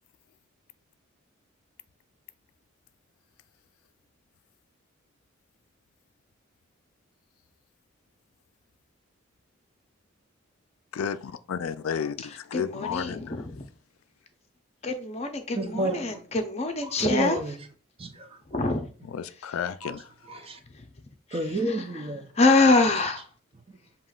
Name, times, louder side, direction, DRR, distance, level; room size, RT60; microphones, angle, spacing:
voice 1, 10.9-13.3 19.1-20.1, left 7 dB, 90° left, 0.4 m, -32 dB
voice 2, 12.3-13.6 14.8-17.4 18.5-18.8 20.7-20.9 22.4-23.3, left 3 dB, 30° left, 0.6 m, -24 dB
voice 3, 15.5-16.3 16.8-17.7 18.0-18.4 19.8-20.0 20.2-20.6 21.3-22.3 23.7-23.8, right 2 dB, 30° right, 0.6 m, -31 dB
7.2 x 2.9 x 2.4 m
head